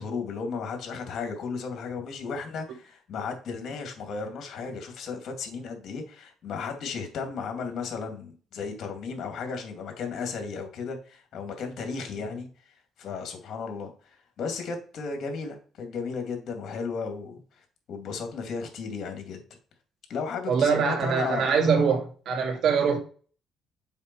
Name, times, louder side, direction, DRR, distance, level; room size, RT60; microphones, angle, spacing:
voice 1, 0.0-19.4 20.1-21.5, left 5 dB, 60° left, 2.6 m, -35 dB
voice 2, 20.5-23.0, right 6 dB, 65° right, 2.6 m, -23 dB
7.2 x 5.4 x 4.7 m
cardioid pair, 100°, 0 cm